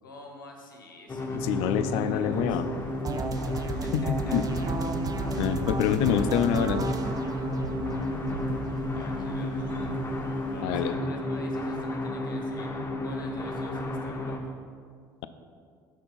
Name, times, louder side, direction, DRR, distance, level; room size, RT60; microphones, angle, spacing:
voice 1, 0.0-2.6 3.6-4.4 5.1-6.3 8.9-9.9 10.5-12.7 13.0-14.6, left 2 dB, 90° left, 2 dB, 0.8 m, -48 dB
sound 1, 1.1-14.4, left 1 dB, 25° left, 0.8 m, -32 dB
sound 2, 1.2-10.6, right 2 dB, 90° right, 0.6 m, -42 dB
voice 2, 1.3-2.6 3.9-4.4 5.4-7.0 10.6-11.0, left 9 dB, 65° left, 11 dB, 0.4 m, -26 dB
sound 3, 3.0-9.0, right 4 dB, 35° right, 0.6 m, -34 dB
5.7 x 4.4 x 5.5 m, 2.1 s
hypercardioid pair, 60°, 11 cm